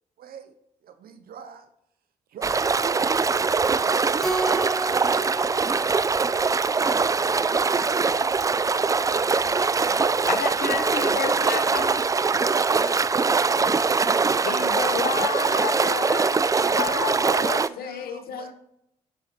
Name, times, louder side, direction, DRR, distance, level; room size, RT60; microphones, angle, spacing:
voice 1, 0.2-0.5 0.8-1.7 2.3-5.6 16.6-18.5, right 7 dB, 60° right, 9 dB, 0.7 m, -43 dB
sound 1, 2.4-17.7, right 4 dB, 20° right, 0.3 m, -22 dB
Keyboard (musical), 4.2-6.9, right 3 dB, ahead, 1.3 m, -32 dB
voice 2, 9.0-9.8 10.3-10.5 12.8-13.8, left 1 dB, 25° left, 4 dB, 1.7 m, -43 dB
voice 3, 10.3-12.1 14.4-16.4 16.7-18.5, left 8 dB, 60° left, 9 dB, 0.8 m, -31 dB
10.0 x 5.6 x 2.9 m, 0.80 s
hypercardioid pair, 40°, 17 cm